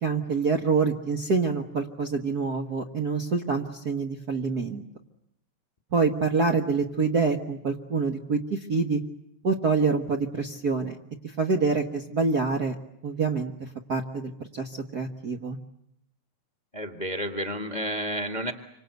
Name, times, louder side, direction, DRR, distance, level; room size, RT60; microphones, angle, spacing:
voice 1, 0.0-4.8 5.9-9.0 9.4-11.0 11.2-12.8 13.0-15.6, right 4 dB, 45° right, 3 dB, 1.4 m, -26 dB
voice 2, 16.7-18.5, equal, 20° left, 4 dB, 1.2 m, -31 dB
28.0 x 25.5 x 8.1 m, 0.79 s
omnidirectional pair, 3.4 m